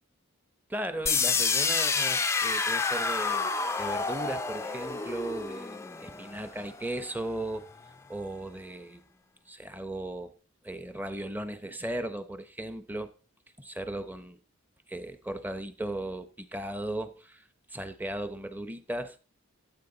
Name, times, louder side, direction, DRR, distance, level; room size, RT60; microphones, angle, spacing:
voice 1, 0.7-3.5 3.8-7.7 8.1-9.0 9.5-10.4 10.6-13.1 13.6-14.4 14.9-19.2, right 1 dB, 10° right, 0.8 m, -36 dB
sound 1, 1.1-7.0, left 4 dB, 10° left, 0.4 m, -29 dB
14.5 x 8.6 x 3.9 m
head